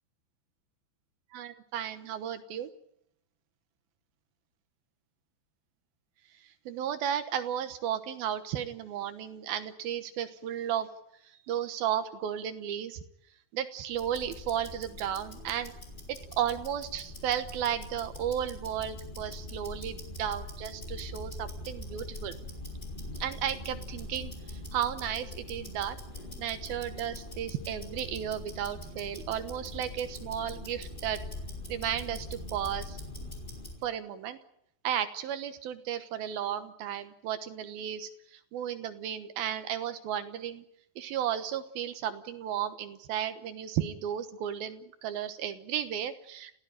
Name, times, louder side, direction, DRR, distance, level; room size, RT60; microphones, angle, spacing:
voice 1, 1.3-2.7 6.4-10.9 11.3-13.0 13.5-15.7 16.1-22.3 23.2-26.0 26.4-31.2 31.7-33.0 33.8-34.4 34.8-40.6 41.0-46.6, right 10 dB, 70° right, 10 dB, 2.5 m, -34 dB
Tick-tock, 13.9-33.8, left 1 dB, 10° left, 4.0 m, -42 dB
29.5 x 16.0 x 9.1 m, 0.75 s
omnidirectional pair, 5.5 m